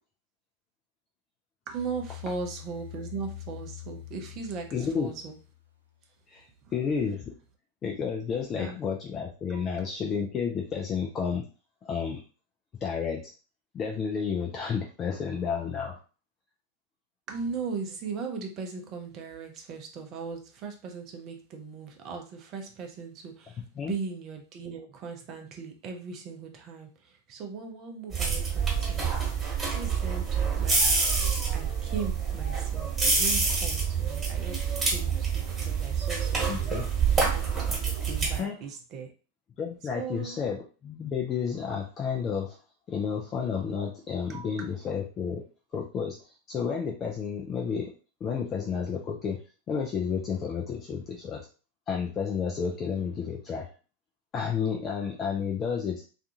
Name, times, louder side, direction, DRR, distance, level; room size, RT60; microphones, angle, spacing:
voice 1, 1.7-5.4 8.6-8.8 9.5-9.7 17.3-29.2 29.4-31.1 31.5-36.7 37.3-37.5 38.1-39.1 39.9-40.4 44.3-44.5, right 5 dB, 35° right, 3 dB, 0.6 m, -38 dB
sound 1, 1.8-5.8, left 14 dB, 85° right, 0.6 m, -44 dB
voice 2, 4.7-5.1 6.3-6.4 6.7-7.3 7.8-11.4 11.8-12.2 12.8-13.3 13.7-16.0 23.8-23.9 36.5-36.9 38.2-38.5 39.6-42.6 42.9-45.4 45.7-47.9 48.2-49.4 49.7-51.4 51.9-53.7 54.3-56.0, left 6 dB, 25° left, -1 dB, 0.4 m, -31 dB
sound 2, 28.1-38.4, right 5 dB, 15° right, 1.4 m, -27 dB
2.4 x 2.3 x 2.7 m, 0.36 s
figure-of-eight pair, 90°, 0 cm